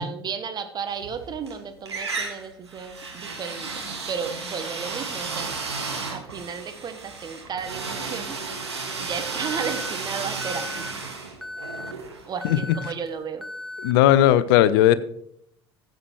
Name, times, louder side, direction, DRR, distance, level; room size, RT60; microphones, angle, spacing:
voice 1, 0.0-5.5 6.1-8.4 9.0-10.9 12.3-13.5, right 6 dB, 30° right, 8 dB, 1.1 m, -34 dB
sound 1, 0.9-1.5 1.9-12.7, right 4 dB, 85° right, 1.6 m, -33 dB
Alarm, 9.4-9.9 10.4-10.9 11.4-11.9 12.4-12.9 13.4-13.9, left 1 dB, ahead, 0.6 m, -36 dB
voice 2, 13.8-15.0, left 12 dB, 60° left, 16 dB, 0.6 m, -17 dB
15.0 x 7.7 x 3.1 m, 0.71 s
figure-of-eight pair, 70°, 14 cm